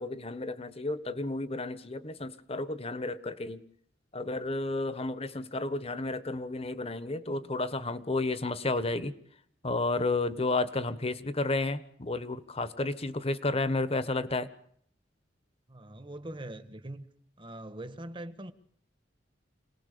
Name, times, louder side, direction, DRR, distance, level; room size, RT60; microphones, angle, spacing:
voice 1, 0.0-3.6 4.1-9.1 9.6-14.5, left 2 dB, 35° left, 1.3 m, -32 dB
voice 2, 15.7-17.1 17.4-18.5, right 1 dB, 30° right, 1.5 m, -42 dB
27.0 x 19.5 x 6.8 m
head